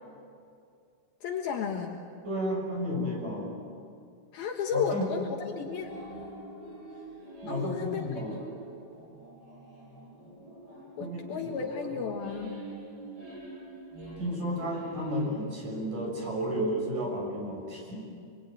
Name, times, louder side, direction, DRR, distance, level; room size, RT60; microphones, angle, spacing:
voice 1, 1.2-2.0 4.3-5.9 7.5-8.5 11.0-12.6, left 6 dB, 75° left, 1 dB, 3.4 m, -33 dB
voice 2, 2.2-3.5 4.7-5.1 7.4-8.4 11.0-11.5 14.2-18.1, equal, 55° right, -2 dB, 8.6 m, -32 dB
sound 1, 5.6-16.2, right 1 dB, 25° right, 6.4 m, -45 dB
28.0 x 22.0 x 9.2 m, 2.4 s
omnidirectional pair, 4.4 m